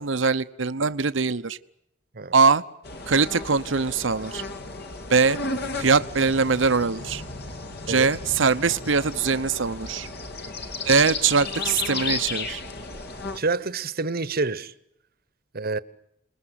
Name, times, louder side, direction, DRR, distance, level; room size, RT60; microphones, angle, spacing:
voice 1, 0.0-1.6 2.3-2.6 3.1-4.4 5.1-5.4 5.8-7.2 7.9-10.1 10.8-12.6, right 4 dB, 80° right, 0.9 m, -22 dB
sound 1, 2.8-13.4, left 3 dB, 60° left, 2.7 m, -34 dB
voice 2, 13.3-14.7 15.5-15.8, right 3 dB, 50° right, 1.1 m, -27 dB
28.5 x 21.0 x 8.2 m
head